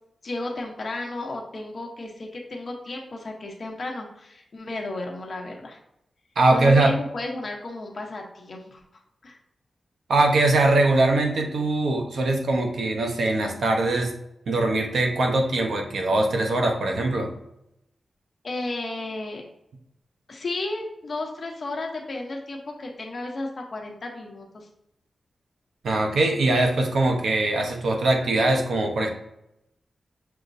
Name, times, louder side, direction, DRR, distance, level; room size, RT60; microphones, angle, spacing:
voice 1, 0.2-5.8 6.5-8.8 9.2-9.3 18.4-19.4 20.3-24.7, left 2 dB, 40° left, 1 dB, 0.8 m, -33 dB
voice 2, 6.4-7.0 10.1-14.1 14.5-17.3 25.8-29.1, right 2 dB, 70° right, 2 dB, 0.8 m, -21 dB
6.4 x 3.1 x 2.6 m, 0.82 s
wide cardioid pair, 175°, 0 cm